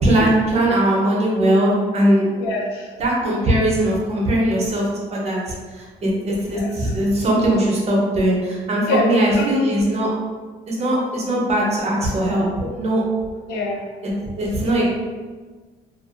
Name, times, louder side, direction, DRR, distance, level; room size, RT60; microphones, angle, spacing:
voice 1, 0.0-2.3 3.0-4.9 5.1-5.4 5.8-10.1 10.7-13.0 14.4-14.9, right 1 dB, 40° right, -3 dB, 0.8 m, -19 dB
voice 2, 2.4-2.9 6.5-6.9 8.9-9.1 9.4-9.6 13.5-13.9, left 2 dB, 85° left, 0 dB, 0.5 m, -25 dB
2.5 x 2.4 x 2.4 m, 1.4 s
cardioid pair, 110°, 17 cm